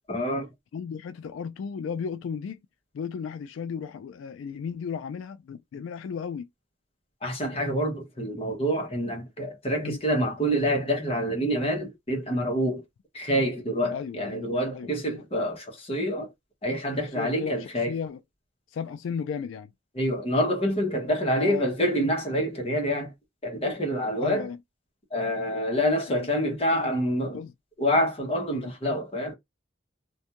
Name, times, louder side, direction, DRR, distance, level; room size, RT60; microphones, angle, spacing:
voice 1, 0.1-0.5 7.2-12.8 13.1-16.3 16.6-18.0 19.9-23.1 23.4-24.5 25.1-27.4 27.8-29.3, equal, 30° left, 0.9 m, -27 dB
voice 2, 0.7-2.6 2.9-6.5 9.8-10.0 13.9-15.2 17.1-18.2 18.7-19.7 21.4-21.7 24.2-24.6 26.1-26.3 27.3-27.5 28.5-28.7, left 6 dB, 85° left, 0.3 m, -35 dB
2.5 x 2.2 x 2.8 m
head